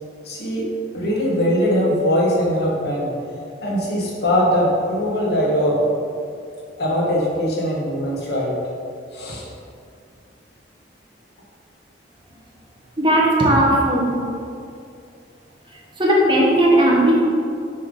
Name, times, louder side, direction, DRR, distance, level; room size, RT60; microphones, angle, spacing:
voice 1, 0.2-0.7 0.9-3.1 3.6-5.8 6.8-8.6 9.1-9.5, equal, 65° left, -4 dB, 1.4 m, -21 dB
voice 2, 13.0-14.1 16.0-17.2, right 1 dB, 25° right, -3 dB, 1.1 m, -16 dB
6.6 x 3.5 x 5.4 m, 2.4 s
head